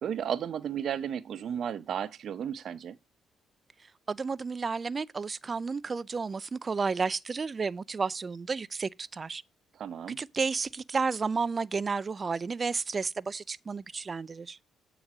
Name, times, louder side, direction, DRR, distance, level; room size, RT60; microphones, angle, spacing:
voice 1, 0.0-3.0 9.8-10.2, right 8 dB, 65° right, 0.7 m, -33 dB
voice 2, 4.1-9.4 10.1-14.6, right 4 dB, 35° right, 0.4 m, -32 dB
8.7 x 3.9 x 5.9 m
cardioid pair, 90°, 0 cm